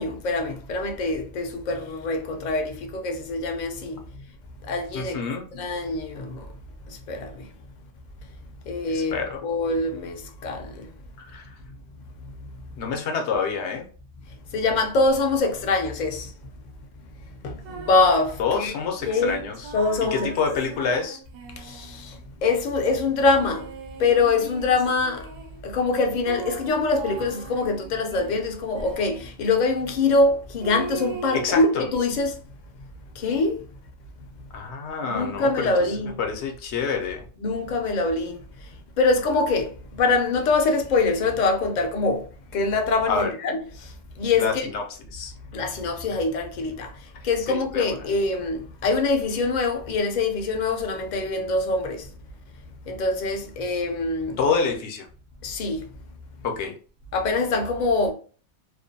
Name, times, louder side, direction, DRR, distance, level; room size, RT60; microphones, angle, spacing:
voice 1, 0.0-4.3 4.6-5.2 5.5-6.5 6.9-7.5 8.7-10.9 12.2-12.3 14.5-16.3 17.4-18.7 19.1-19.4 19.7-20.6 21.6-23.7 24.0-25.3 25.6-32.4 33.1-33.7 35.0-36.2 37.4-44.7 45.5-52.1 52.9-54.4 55.4-55.9 57.1-58.1, left 3 dB, 60° left, 0.5 m, -24 dB
voice 2, 4.9-5.4 8.9-9.4 11.2-11.5 12.8-13.9 18.4-19.7 20.1-21.2 31.3-31.9 34.5-37.2 43.1-43.3 44.3-44.8 45.1-45.3 47.5-47.9 54.4-55.1 56.4-56.7, left 5 dB, 80° left, 0.9 m, -27 dB
sound 1, 17.6-18.3 19.0-22.2 23.1-25.6 26.2-29.3 30.6-31.7, right 5 dB, 85° right, 0.9 m, -39 dB
2.5 x 2.1 x 2.6 m
omnidirectional pair, 1.1 m